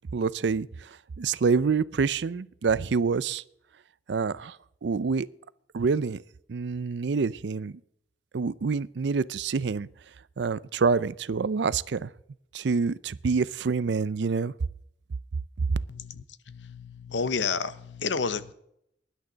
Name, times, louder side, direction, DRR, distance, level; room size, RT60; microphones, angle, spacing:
voice 1, 0.1-0.7 1.2-3.4 4.1-4.6 4.8-5.3 5.7-6.2 6.5-7.7 8.3-9.9 10.4-12.1 12.5-14.5, right 5 dB, 65° right, 0.5 m, -26 dB
voice 2, 15.9-18.5, left 5 dB, 75° left, 0.8 m, -31 dB
19.0 x 11.0 x 3.9 m
head